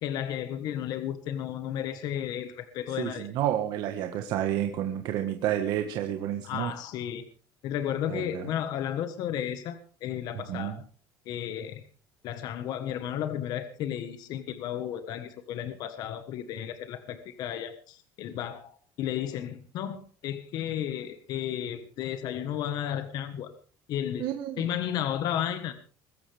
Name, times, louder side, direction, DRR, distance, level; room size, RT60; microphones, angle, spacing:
voice 1, 0.0-3.3 6.4-7.2 7.6-10.8 11.3-11.8 12.2-23.5 23.9-24.3 24.6-25.8, left 10 dB, 50° left, 9 dB, 1.4 m, -33 dB
voice 2, 3.0-6.7 8.1-8.5 10.3-10.8 24.2-24.6, right 11 dB, 55° right, 5 dB, 1.5 m, -30 dB
22.0 x 14.0 x 3.5 m, 0.41 s
cardioid pair, 175°, 8 cm